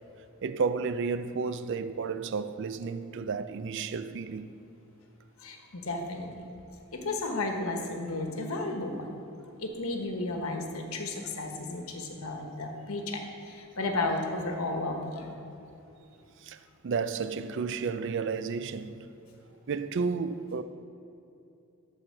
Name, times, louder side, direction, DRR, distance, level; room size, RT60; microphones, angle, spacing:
voice 1, 0.4-4.5 16.4-19.0 19.7-20.6, right 5 dB, 60° right, 0.4 m, -32 dB
voice 2, 5.4-6.3 6.9-9.1 9.6-15.4, left 2 dB, 80° left, 1.2 m, -33 dB
12.5 x 4.3 x 6.4 m
head